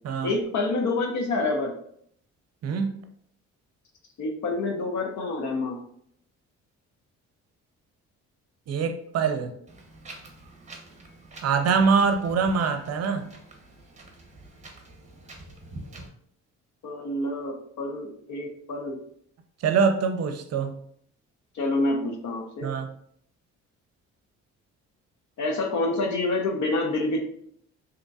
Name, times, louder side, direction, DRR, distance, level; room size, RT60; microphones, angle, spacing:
voice 1, 0.2-1.7 4.2-5.8 16.8-19.0 21.5-22.7 25.4-27.2, left 2 dB, 70° left, 3 dB, 0.8 m, -27 dB
voice 2, 2.6-2.9 8.7-9.5 11.4-13.2 19.6-20.8 22.6-22.9, right 5 dB, 55° right, 7 dB, 0.6 m, -24 dB
Wind, 9.7-16.1, right 2 dB, 25° right, 0.8 m, -46 dB
3.8 x 2.9 x 2.3 m, 0.66 s
cardioid pair, 90°, 30 cm